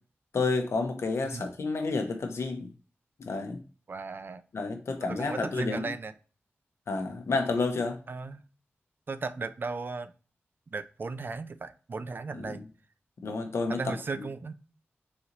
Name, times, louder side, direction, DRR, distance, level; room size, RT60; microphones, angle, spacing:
voice 1, 0.3-2.7 3.2-3.6 4.5-5.9 6.9-8.0 12.4-12.6 13.2-13.9, left 3 dB, 80° left, 0.8 m, -30 dB
voice 2, 3.9-4.4 5.1-6.1 8.1-8.4 9.1-10.1 10.7-12.6 13.7-14.5, right 4 dB, 50° right, 0.4 m, -36 dB
4.2 x 2.9 x 3.9 m
cardioid pair, 60°, 5 cm